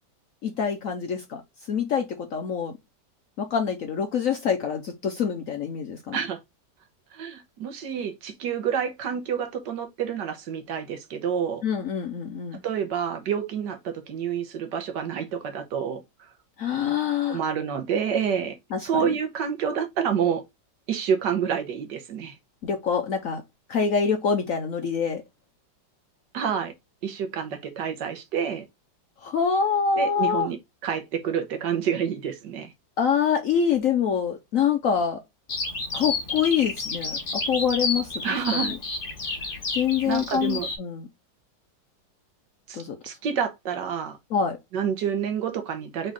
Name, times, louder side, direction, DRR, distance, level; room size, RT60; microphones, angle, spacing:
voice 1, 0.4-1.4 1.7-2.7 3.4-6.2 11.6-12.6 16.6-17.4 18.7-19.0 22.6-23.4 23.7-25.2 29.2-30.5 33.0-35.2 35.9-38.8 39.7-41.1 42.7-43.0 44.3-44.6, left 7 dB, 60° left, 0.9 m, -25 dB
voice 2, 7.1-11.6 12.6-16.0 17.3-20.4 20.9-22.4 26.3-26.7 27.0-28.6 30.0-30.6 30.8-32.7 38.2-38.7 40.1-40.7 42.7-44.2 44.7-46.1, right 7 dB, 70° right, 1.5 m, -28 dB
Bird vocalization bird call bird song, 35.5-40.8, left 3 dB, 30° left, 1.2 m, -30 dB
4.0 x 3.8 x 3.5 m
omnidirectional pair, 2.0 m